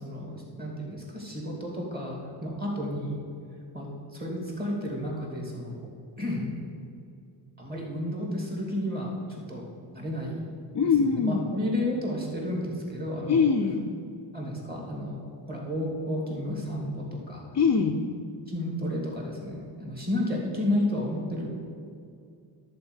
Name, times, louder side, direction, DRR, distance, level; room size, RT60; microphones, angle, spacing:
voice 1, 0.0-3.2 3.7-3.9 4.1-5.9 6.2-6.5 7.6-9.1 9.5-9.7 9.9-10.5 10.8-13.4 14.3-15.2 15.5-17.4 18.5-21.5, left 1 dB, 20° right, -2 dB, 2.8 m, -32 dB
voice 2, 10.7-11.4 13.3-13.8 17.5-18.0, left 5 dB, 35° left, 2 dB, 0.6 m, -22 dB
11.0 x 4.4 x 8.2 m, 2.4 s
cardioid pair, 110°, 49 cm